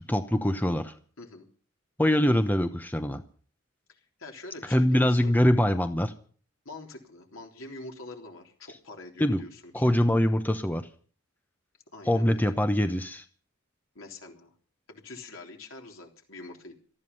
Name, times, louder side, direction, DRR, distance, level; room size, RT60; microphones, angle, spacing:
voice 1, 0.1-0.9 2.0-3.2 4.7-6.1 9.2-9.4 9.7-10.9 12.1-13.2, left 1 dB, 10° left, 8 dB, 0.9 m, -23 dB
voice 2, 3.9-5.3 6.7-9.9 11.9-12.5 14.0-14.5 14.9-16.7, left 2 dB, 75° left, 2 dB, 3.6 m, -45 dB
18.5 x 13.5 x 5.4 m, 0.43 s
head